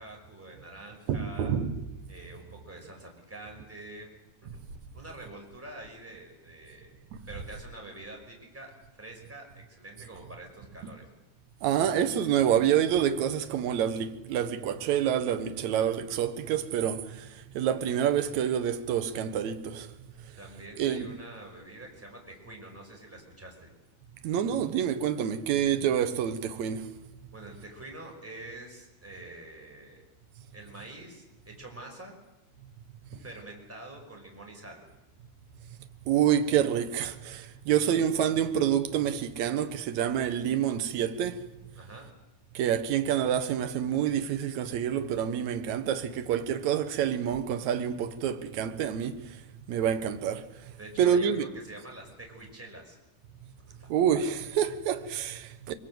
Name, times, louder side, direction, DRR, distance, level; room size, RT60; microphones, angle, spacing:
voice 1, 0.0-1.5 2.1-4.1 4.4-4.6 4.9-7.0 7.3-8.7 9.0-11.0 20.4-23.7 27.3-30.0 30.5-32.2 33.2-34.8 41.8-42.1 50.8-53.0 53.7-53.9, right 2 dB, 5° right, 5.3 m, -46 dB
voice 2, 1.1-1.8 7.1-7.2 11.6-19.9 20.2-20.3 20.8-21.1 24.2-26.9 36.1-41.5 42.5-49.4 49.7-51.5 53.4-53.5 53.9-55.7, right 9 dB, 60° right, 2.3 m, -27 dB
24.5 x 24.0 x 7.9 m
omnidirectional pair, 4.5 m